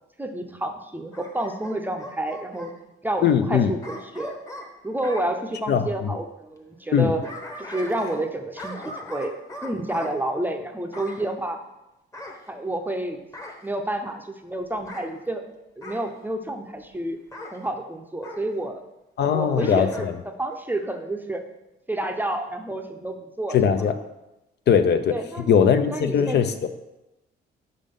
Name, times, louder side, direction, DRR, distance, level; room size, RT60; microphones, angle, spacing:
voice 1, 0.2-2.7 3.0-4.4 4.8-7.2 7.6-9.4 9.6-11.6 12.5-13.2 13.6-15.4 15.8-17.2 17.5-18.8 19.2-21.4 21.9-23.8 25.1-25.6 25.9-26.4, right 1 dB, 10° right, 5 dB, 0.6 m, -29 dB
Bark / Growling, 1.1-2.7 3.8-5.3 6.9-8.3 8.6-10.1 10.9-11.2 12.1-12.9 13.3-13.7 14.8-15.1 15.8-16.1 17.3-17.6 18.2-18.4 19.5-20.1 20.5-20.6, left 1 dB, 15° left, 0.9 m, -39 dB
voice 2, 3.2-3.7 5.7-6.1 6.9-7.1 19.2-20.1 23.5-23.9 24.7-25.2 25.5-26.7, left 7 dB, 60° left, 9 dB, 0.5 m, -20 dB
5.1 x 3.7 x 5.2 m, 0.94 s
cardioid pair, 90°, 20 cm